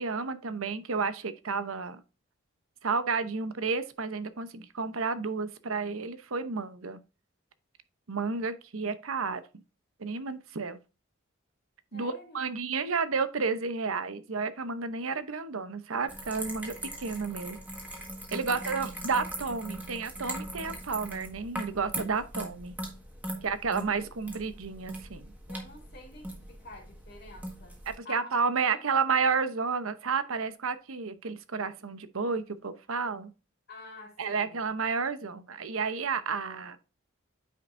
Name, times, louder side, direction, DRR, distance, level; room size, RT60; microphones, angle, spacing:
voice 1, 0.0-2.0 2.8-7.0 8.1-9.6 10.0-10.8 11.9-17.6 18.3-22.8 23.4-25.3 27.9-33.3 34.2-36.8, right 5 dB, 85° right, 0.8 m, -31 dB
voice 2, 11.9-12.8 18.5-18.7 25.5-27.8 28.0-28.8 33.7-34.6, left 2 dB, 50° left, 2.1 m, -49 dB
sound 1, 16.1-28.0, right 1 dB, 10° right, 1.5 m, -40 dB
8.9 x 5.2 x 2.6 m
head